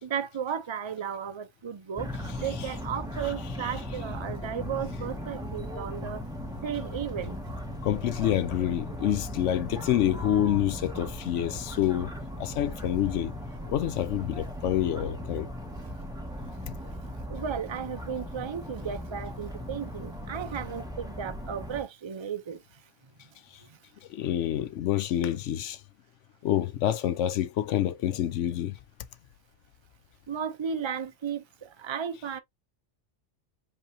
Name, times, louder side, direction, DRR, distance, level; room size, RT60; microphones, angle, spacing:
voice 1, 0.0-6.2 6.6-7.4 17.3-22.8 23.6-23.8 30.3-32.4, right 8 dB, 35° right, 0.5 m, -34 dB
sound 1, 2.0-21.8, left 1 dB, 5° right, 1.3 m, -38 dB
voice 2, 7.8-12.1 12.4-13.3 13.7-15.5 24.1-25.8 26.4-28.8, left 11 dB, 80° left, 0.9 m, -27 dB
5.2 x 3.3 x 2.7 m
omnidirectional pair, 1.2 m